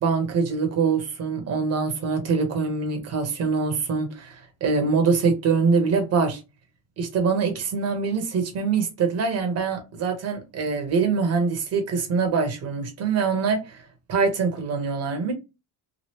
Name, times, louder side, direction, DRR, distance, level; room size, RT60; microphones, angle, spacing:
voice 1, 0.0-6.4 7.0-13.8 14.1-15.3, right 5 dB, 35° right, 0.8 m, -24 dB
3.1 x 2.4 x 2.8 m
cardioid pair, 175°, 46 cm